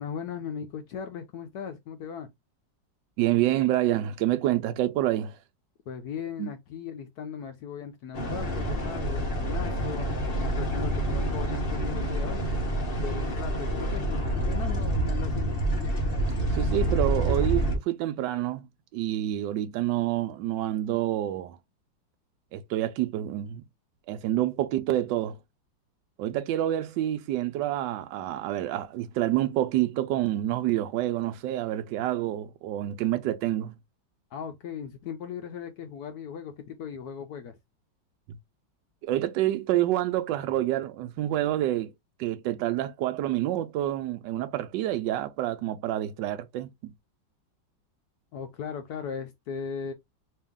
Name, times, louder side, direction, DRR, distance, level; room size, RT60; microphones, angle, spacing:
voice 1, 0.0-2.3 5.9-10.1 10.5-12.4 13.0-15.6 34.3-37.6 48.3-49.9, left 7 dB, 70° left, 1.0 m, -38 dB
voice 2, 3.2-5.4 6.4-6.5 16.2-18.7 18.9-21.6 22.5-23.6 24.1-25.4 26.2-33.7 39.0-41.9 42.2-46.9, right 13 dB, 75° right, 1.2 m, -28 dB
sound 1, 8.1-17.8, right 1 dB, 40° left, 0.8 m, -27 dB
3.2 x 2.8 x 3.5 m
omnidirectional pair, 2.0 m